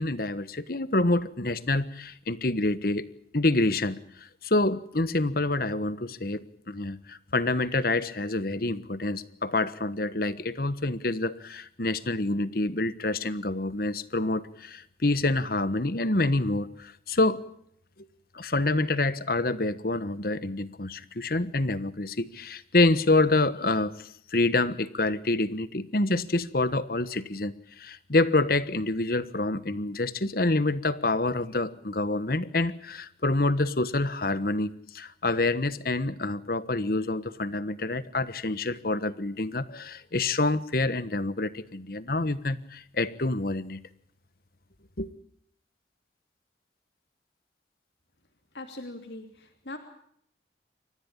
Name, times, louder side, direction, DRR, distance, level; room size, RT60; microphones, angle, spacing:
voice 1, 0.0-3.1 3.3-17.4 18.3-43.8 45.0-45.1, left 2 dB, 50° left, 15 dB, 1.3 m, -27 dB
voice 2, 48.5-49.8, left 2 dB, 70° left, 5 dB, 2.9 m, -41 dB
28.5 x 14.5 x 8.8 m, 0.68 s
head